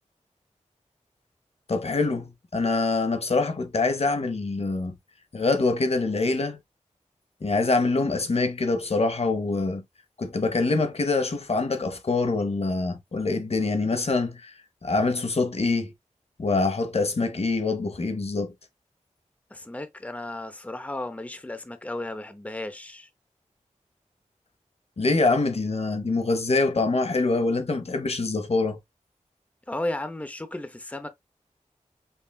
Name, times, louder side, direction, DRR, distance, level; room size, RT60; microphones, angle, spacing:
voice 1, 1.7-4.9 5.3-6.6 7.4-9.8 10.2-15.9 16.4-18.5 25.0-28.8, left 3 dB, 50° left, 0.8 m, -25 dB
voice 2, 19.5-23.1 29.7-31.1, left 1 dB, 10° left, 0.6 m, -34 dB
5.5 x 2.3 x 2.2 m
wide cardioid pair, 50°, 13 cm